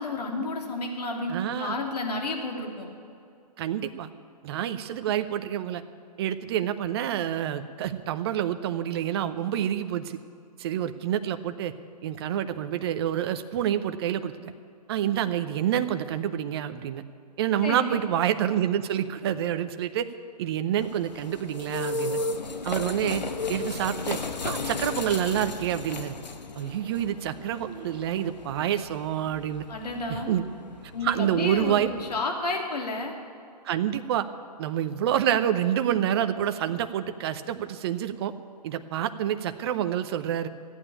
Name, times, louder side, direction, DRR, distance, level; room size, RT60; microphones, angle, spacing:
voice 1, 0.0-2.9 17.6-18.0 29.7-30.4 30.9-33.1, left 2 dB, 70° left, 1 dB, 2.9 m, -31 dB
voice 2, 1.3-1.8 3.6-4.1 4.4-5.8 6.2-10.2 10.6-11.7 12.0-14.5 14.9-17.0 17.4-20.1 20.4-22.2 22.6-23.2 23.5-24.2 24.4-26.2 26.6-29.7 30.1-30.4 31.0-31.9 33.6-34.3 34.6-38.3 38.6-40.5, right 10 dB, 40° right, 10 dB, 0.7 m, -27 dB
sound 1, 20.8-32.2, left 3 dB, 85° left, 1.1 m, -35 dB
14.5 x 9.1 x 8.6 m, 2.4 s
hypercardioid pair, 140°, 21 cm